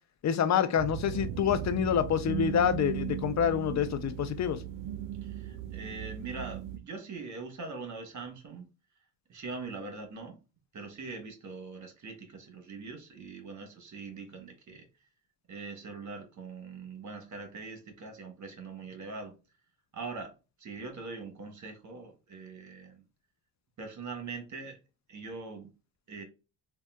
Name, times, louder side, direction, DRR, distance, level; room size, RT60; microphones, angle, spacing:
voice 1, 0.2-4.6, left 8 dB, 40° left, 0.5 m, -27 dB
sound 1, 0.8-6.8, right 10 dB, 65° right, 0.5 m, -37 dB
voice 2, 5.2-8.7 9.3-10.4 10.7-14.9 15.5-19.3 19.9-20.3 20.6-23.0 23.8-24.8 25.1-25.7 26.1-26.2, right 4 dB, 40° right, 1.1 m, -42 dB
3.6 x 2.3 x 2.3 m
supercardioid pair, 75°, 47 cm